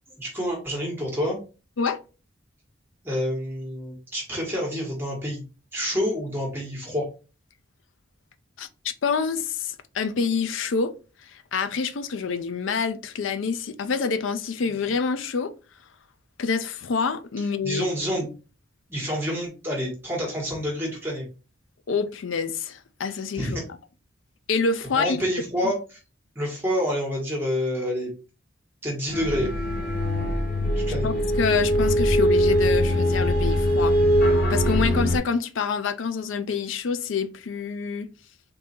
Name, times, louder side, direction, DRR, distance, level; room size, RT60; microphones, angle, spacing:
voice 1, 0.2-1.4 3.0-5.4 5.7-7.1 17.6-18.3 18.9-21.2 23.4-23.6 24.9-26.0 26.3-28.1 28.8-29.5 30.9-31.1, equal, 10° right, 1.4 m, -28 dB
voice 2, 8.6-10.9 11.2-15.5 16.4-17.9 21.9-23.6 24.5-25.2 25.6-25.7 31.0-34.0 34.5-38.1, left 5 dB, 70° left, 0.4 m, -27 dB
sound 1, 29.1-35.2, equal, 50° left, 1.1 m, -22 dB
3.8 x 2.7 x 4.2 m
head